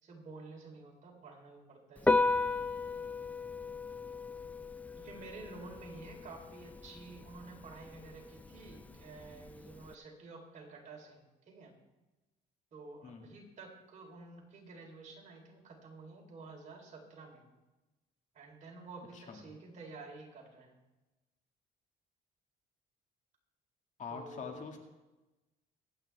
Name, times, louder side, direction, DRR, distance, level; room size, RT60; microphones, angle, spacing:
voice 1, 0.0-2.6 5.0-11.7 12.7-17.4 18.3-20.7 24.1-24.6, right 3 dB, 45° right, 0 dB, 3.8 m, -51 dB
Piano, 2.0-9.9, left 3 dB, 10° left, 0.4 m, -36 dB
voice 2, 19.1-19.4 24.0-24.8, left 5 dB, 45° left, 2 dB, 2.1 m, -44 dB
23.5 x 9.1 x 3.5 m, 1.1 s
cardioid pair, 110°, 17 cm